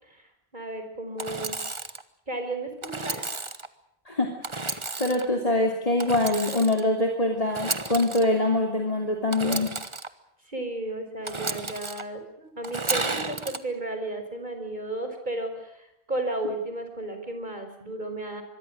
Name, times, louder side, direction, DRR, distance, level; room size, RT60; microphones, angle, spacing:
voice 1, 0.0-1.6 2.3-3.2 10.5-18.4, right 2 dB, 45° right, 6 dB, 5.4 m, -34 dB
Engine / Sawing, 1.2-2.0 2.8-3.7 4.4-5.3 6.0-6.9 7.5-8.2 9.3-10.1 11.2-12.0 12.6-13.6, right 3 dB, 30° right, 1.3 m, -32 dB
voice 2, 4.5-9.7, left 2 dB, 35° left, 3 dB, 3.1 m, -24 dB
26.0 x 22.0 x 6.4 m, 0.82 s
omnidirectional pair, 1.1 m